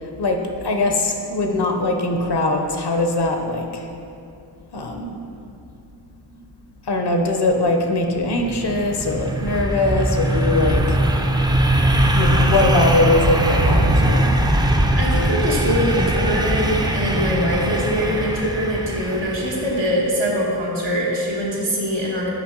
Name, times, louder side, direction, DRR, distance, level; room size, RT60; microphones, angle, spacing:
voice 1, 0.2-3.8 4.7-5.1 6.9-11.0 12.1-14.3 17.3-17.5, left 2 dB, 65° left, 4 dB, 0.7 m, -21 dB
sound 1, 8.2-19.9, right 1 dB, 10° right, 0.4 m, -20 dB
voice 2, 15.0-22.3, equal, 85° right, -4 dB, 1.2 m, -23 dB
5.8 x 4.9 x 3.7 m, 2.5 s
wide cardioid pair, 50°, 43 cm